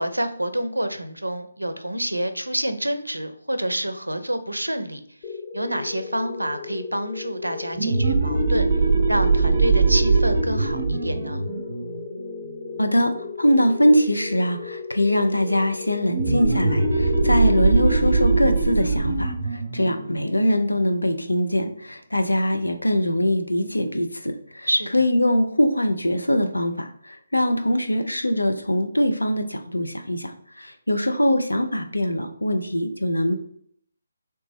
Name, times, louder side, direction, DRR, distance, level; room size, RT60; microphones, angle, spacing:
voice 1, 0.0-5.0 5.5-8.7 9.1-11.4 24.7-25.0, right 1 dB, 85° right, 9 dB, 0.5 m, -27 dB
sound 1, 5.2-18.4, left 5 dB, 25° left, 0.3 m, -36 dB
sound 2, 7.7-13.0 16.1-21.4, right 3 dB, 45° right, 0.6 m, -22 dB
voice 2, 12.8-33.4, equal, 80° left, 6 dB, 0.5 m, -22 dB
3.1 x 2.9 x 3.4 m, 0.65 s
figure-of-eight pair, 145°, 0 cm